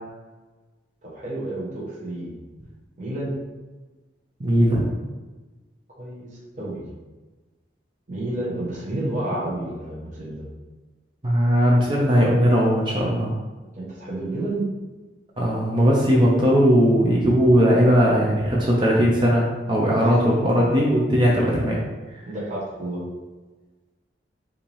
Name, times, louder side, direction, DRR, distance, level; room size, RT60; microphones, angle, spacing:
voice 1, 1.1-2.3 3.0-3.4 6.0-6.3 6.6-6.8 8.1-10.4 13.7-14.7 19.9-20.0 20.3-20.4 20.7-20.8 22.3-23.0, right 1 dB, 40° right, -6 dB, 1.0 m, -30 dB
voice 2, 4.4-4.8 11.2-13.3 15.4-21.8, equal, 25° right, -4 dB, 0.6 m, -18 dB
5.6 x 2.6 x 3.3 m, 1.2 s
head